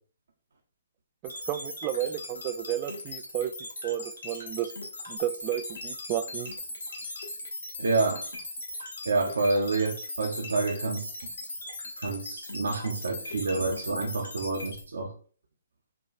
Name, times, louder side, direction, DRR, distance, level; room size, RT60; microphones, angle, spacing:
sound 1, 1.2-14.8, left 2 dB, 70° left, 1.3 m, -39 dB
voice 1, 1.2-3.5 3.8-4.7 5.1-6.5, right 12 dB, 30° right, 10 dB, 0.4 m, -32 dB
voice 2, 7.8-8.2 9.1-11.1 12.0-15.1, right 3 dB, 65° right, 2 dB, 0.7 m, -28 dB
5.9 x 2.3 x 3.0 m, 0.42 s
figure-of-eight pair, 130°, 0 cm